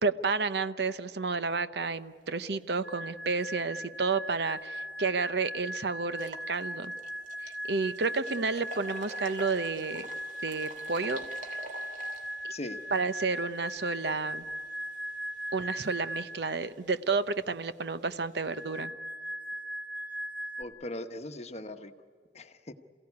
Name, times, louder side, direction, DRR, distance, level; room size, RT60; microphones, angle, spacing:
voice 1, 0.0-6.9 7.4-10.1 10.4-11.2 12.9-14.5 15.5-18.9, right 4 dB, 65° right, 12 dB, 0.8 m, -31 dB
sound 1, 2.8-16.5 18.4-20.6, equal, 5° right, 0.9 m, -39 dB
sound 2, 4.8-4.9 5.3-5.4 6.1-18.8, right 1 dB, 45° right, 2.8 m, -50 dB
voice 2, 20.6-21.9 22.3-22.7, left 1 dB, 40° left, 8 dB, 1.1 m, -39 dB
28.0 x 16.5 x 9.6 m, 2.1 s
head